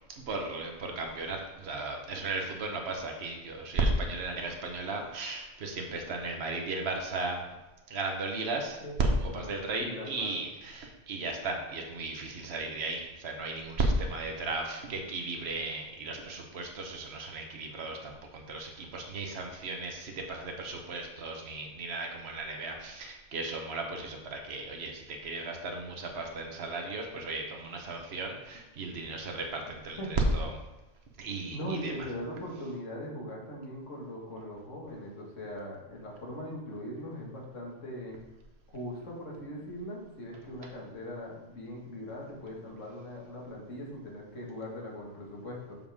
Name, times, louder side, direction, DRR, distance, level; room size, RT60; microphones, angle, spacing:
voice 1, 0.2-7.5 7.9-30.5 31.2-31.9, right 2 dB, 60° right, 2 dB, 1.4 m, -35 dB
voice 2, 8.8-9.5 9.8-10.4 30.0-30.1 31.5-38.2 38.7-45.8, equal, 80° left, -2 dB, 2.1 m, -40 dB
7.1 x 6.8 x 3.6 m, 1.0 s
omnidirectional pair, 1.3 m